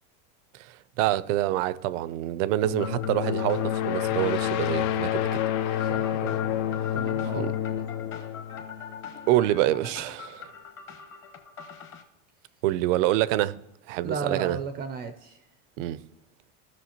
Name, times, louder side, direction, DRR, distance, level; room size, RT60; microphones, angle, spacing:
voice 1, 1.0-5.4 5.7-5.9 7.4-7.5 9.3-10.5 12.6-13.6 13.9-14.6 15.8-16.0, right 15 dB, 75° right, 0.5 m, -26 dB
sound 1, 2.6-9.3, left 10 dB, 70° left, 0.6 m, -29 dB
sound 2, 2.8-12.0, left 7 dB, 30° left, 1.0 m, -43 dB
voice 2, 5.8-7.5 14.0-15.4, right 5 dB, 25° right, 0.4 m, -35 dB
15.5 x 5.6 x 2.9 m
supercardioid pair, 145°, 38 cm